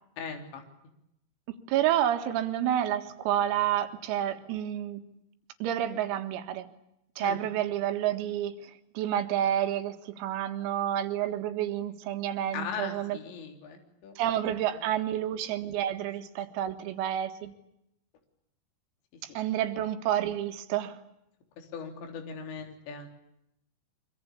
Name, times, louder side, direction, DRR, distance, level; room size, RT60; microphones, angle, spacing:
voice 1, 0.2-0.6 7.2-7.4 12.5-14.1 14.4-14.9 19.3-19.4 21.6-23.1, left 6 dB, 60° left, 4 dB, 5.6 m, -39 dB
voice 2, 1.7-5.0 5.6-6.7 7.2-13.2 14.2-17.5 19.2-21.0, right 11 dB, 90° right, 7 dB, 4.4 m, -29 dB
25.5 x 25.0 x 8.5 m, 0.81 s
omnidirectional pair, 6.0 m